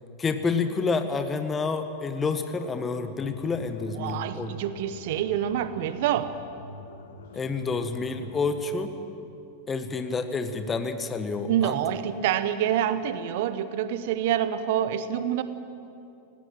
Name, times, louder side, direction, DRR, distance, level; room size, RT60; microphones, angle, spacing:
voice 1, 0.2-4.5 7.3-8.9 9.7-11.8, left 4 dB, 20° left, 8 dB, 1.5 m, -29 dB
sound 1, 3.2-8.8, left 4 dB, 65° left, 1.1 m, -45 dB
voice 2, 3.9-6.3 11.5-15.4, right 10 dB, 50° right, 13 dB, 0.9 m, -27 dB
18.0 x 17.5 x 9.0 m, 2.7 s
figure-of-eight pair, 90°, 0 cm